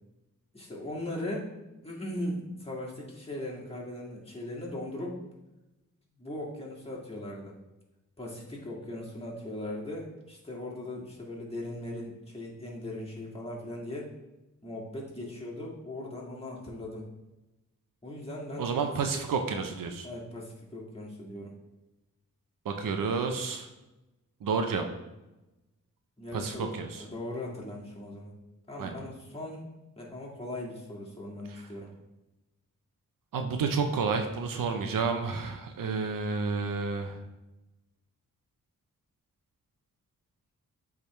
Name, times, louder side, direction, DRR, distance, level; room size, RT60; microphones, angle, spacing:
voice 1, 0.5-1.5 1.8-5.2 6.2-7.5 8.2-14.1 14.6-17.0 18.0-19.2 20.0-21.6 26.2-28.3 28.7-31.9, left 1 dB, 15° left, -4 dB, 2.0 m, -39 dB
voice 2, 18.6-20.1 22.6-23.7 24.4-24.8 26.3-27.0 28.8-29.0 31.5-31.6 33.3-37.2, right 5 dB, 75° right, 5 dB, 0.7 m, -30 dB
8.2 x 3.6 x 3.2 m, 1.0 s
cardioid pair, 50°, 33 cm